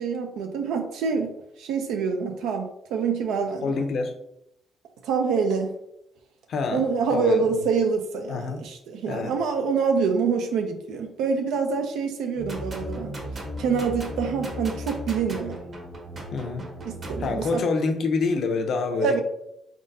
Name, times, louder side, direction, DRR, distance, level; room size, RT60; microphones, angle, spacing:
voice 1, 0.0-3.8 5.0-5.7 6.7-13.1 13.6-15.6 16.8-17.7 19.0-19.2, right 5 dB, 85° right, 5 dB, 0.4 m, -26 dB
voice 2, 3.6-4.1 6.5-6.8 7.1-7.5 8.3-8.6 9.1-9.3 16.3-16.7 17.2-19.2, left 4 dB, 65° left, 6 dB, 0.6 m, -26 dB
sound 1, 12.4-17.5, equal, 45° right, 1.2 m, -35 dB
3.8 x 3.5 x 2.6 m, 0.79 s
cardioid pair, 90°, 0 cm